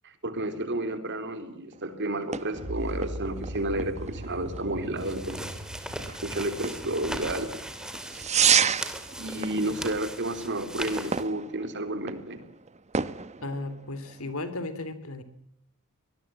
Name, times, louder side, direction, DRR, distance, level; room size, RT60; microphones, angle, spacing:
voice 1, 0.0-5.5 6.2-7.5 9.2-12.4, right 1 dB, 55° right, 9 dB, 3.5 m, -31 dB
sound 1, 1.7-14.3, right 7 dB, 30° right, 1.0 m, -32 dB
sound 2, 2.5-8.6, equal, 80° right, 2.1 m, -40 dB
sound 3, 5.0-11.2, right 1 dB, 5° right, 2.7 m, -38 dB
voice 2, 13.4-15.2, left 2 dB, 70° left, 12 dB, 3.3 m, -35 dB
24.5 x 20.0 x 7.6 m, 0.74 s
head